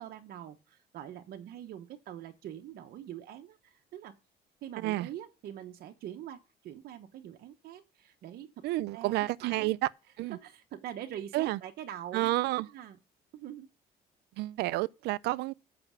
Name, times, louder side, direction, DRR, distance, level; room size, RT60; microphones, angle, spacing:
voice 1, 0.0-4.2 4.6-8.6 8.9-9.7 10.3-12.3 12.7-13.0 13.3-13.7, right 11 dB, 65° right, 1.0 m, -44 dB
voice 2, 8.6-9.8 10.2-10.4 11.3-11.6 12.1-12.7 14.4-15.5, right 18 dB, 80° right, 0.5 m, -30 dB
7.8 x 5.9 x 7.3 m
cardioid pair, 110°, 17 cm